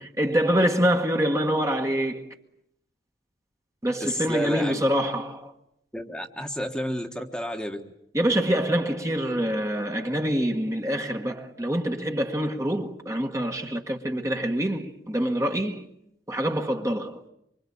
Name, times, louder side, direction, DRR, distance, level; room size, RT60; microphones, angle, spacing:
voice 1, 0.2-2.3 3.8-5.5 8.1-15.9 16.3-17.2, equal, 15° right, 1.4 m, -25 dB
voice 2, 4.0-4.7 5.9-7.8, equal, 5° left, 1.4 m, -31 dB
25.5 x 25.0 x 8.6 m
head